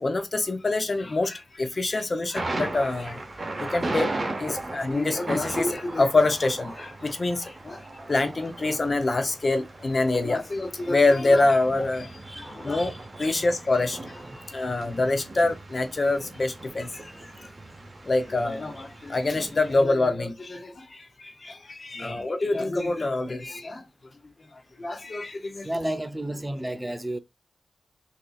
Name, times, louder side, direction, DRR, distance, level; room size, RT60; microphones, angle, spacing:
voice 1, 0.0-3.2 3.6-4.1 4.4-7.8 8.1-12.1 12.4-12.9 13.2-14.0 14.5-16.9 18.1-20.7 21.4-23.8 24.8-25.7, left 2 dB, 45° left, 0.7 m, -25 dB
Thunder, 2.4-19.8, right 2 dB, 35° right, 0.8 m, -37 dB
voice 2, 12.3-13.4 21.9-22.3 25.6-27.2, right 1 dB, 15° right, 0.4 m, -33 dB
4.0 x 2.7 x 2.4 m
cardioid pair, 70°, 0 cm